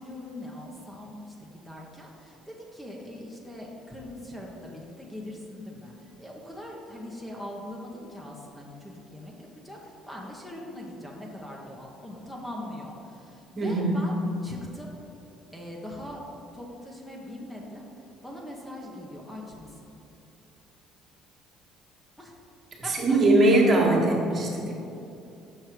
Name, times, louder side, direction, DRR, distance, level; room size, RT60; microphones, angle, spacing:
voice 1, 0.0-14.1 14.4-14.9 15.5-16.2 16.5-17.8 18.2-20.0 22.2-22.3 22.8-23.5, left 1 dB, 5° left, -2 dB, 1.3 m, -41 dB
voice 2, 13.6-14.0 22.9-24.7, right 2 dB, 45° right, -2 dB, 1.8 m, -21 dB
6.9 x 5.5 x 4.7 m, 2.8 s
supercardioid pair, 80°, 0 cm